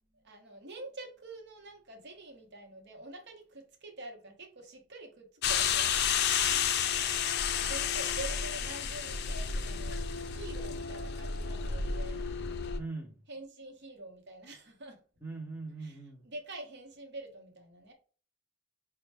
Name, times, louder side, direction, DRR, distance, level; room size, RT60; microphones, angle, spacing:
voice 1, 0.1-6.0 7.4-12.2 13.3-15.0 15.8-17.9, right 2 dB, 55° right, 0.9 m, -46 dB
sound 1, 5.4-12.8, left 7 dB, 55° left, 0.4 m, -31 dB
voice 2, 6.4-6.9 12.8-13.2 15.2-16.3, right 3 dB, 10° right, 0.7 m, -42 dB
5.2 x 2.3 x 3.3 m
head